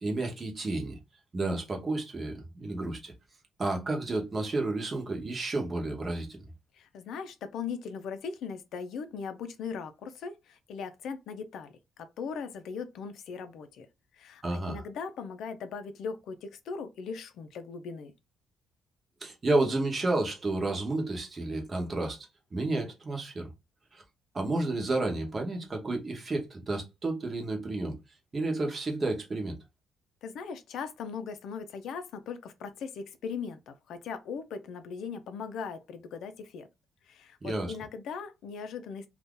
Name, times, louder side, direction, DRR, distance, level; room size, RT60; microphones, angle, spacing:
voice 1, 0.0-1.0 1.3-3.1 3.6-6.3 14.4-14.8 19.2-23.5 23.9-24.0 24.3-28.0 28.3-29.6 37.4-37.7, right 2 dB, 25° right, 0.9 m, -31 dB
voice 2, 6.7-13.9 14.2-18.1 30.2-36.7 37.1-39.1, left 6 dB, 70° left, 0.5 m, -39 dB
2.7 x 2.4 x 3.6 m
cardioid pair, 160°, 0 cm